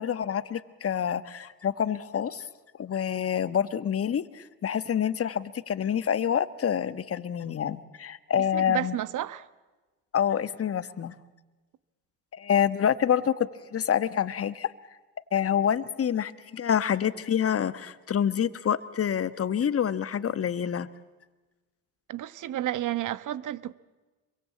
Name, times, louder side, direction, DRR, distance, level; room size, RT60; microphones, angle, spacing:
voice 1, 0.0-2.5 2.8-8.9 10.1-11.1 12.3-14.7 15.3-20.9, left 9 dB, 40° left, 1.3 m, -27 dB
voice 2, 8.4-9.5 22.1-23.7, right 13 dB, 55° right, 1.2 m, -31 dB
26.5 x 23.0 x 8.6 m
supercardioid pair, 75°, 37 cm